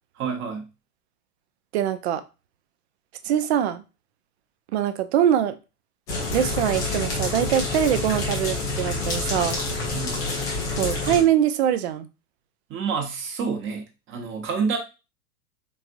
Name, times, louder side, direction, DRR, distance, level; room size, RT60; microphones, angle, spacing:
voice 1, 0.2-0.7 9.9-10.2 12.7-14.8, right 5 dB, 25° right, 2 dB, 1.0 m, -28 dB
voice 2, 1.7-2.2 3.2-3.8 4.7-5.6 6.3-9.6 10.8-12.1, right 10 dB, 45° right, 12 dB, 0.6 m, -23 dB
sound 1, 6.1-11.2, left 3 dB, 10° left, 0.3 m, -27 dB
4.3 x 3.3 x 2.6 m, 0.29 s
figure-of-eight pair, 95°, 47 cm